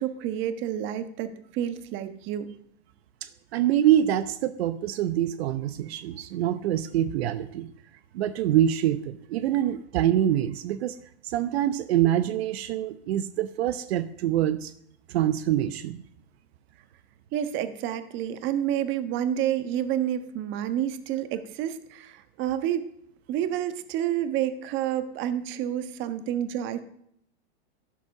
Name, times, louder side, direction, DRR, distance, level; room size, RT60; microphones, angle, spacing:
voice 1, 0.0-2.5 17.3-22.9 23.3-26.8, right 10 dB, 35° right, 11 dB, 1.3 m, -29 dB
voice 2, 3.2-7.7 8.1-11.0 11.2-14.7 15.1-16.0, right 11 dB, 65° right, 12 dB, 0.9 m, -25 dB
11.5 x 11.0 x 6.6 m, 0.69 s
supercardioid pair, 145°, 33 cm